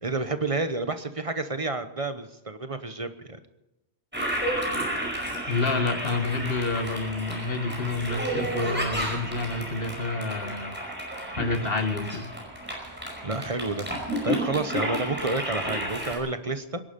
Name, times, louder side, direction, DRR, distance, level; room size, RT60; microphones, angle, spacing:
voice 1, 0.0-3.4 13.2-16.8, right 3 dB, 35° right, 10 dB, 1.0 m, -30 dB
Toilet flush, 4.1-16.2, right 1 dB, 10° right, 5.2 m, -32 dB
voice 2, 5.5-10.8 11.3-12.3, left 3 dB, 65° left, 7 dB, 1.6 m, -28 dB
24.5 x 11.0 x 5.2 m, 0.97 s
omnidirectional pair, 1.1 m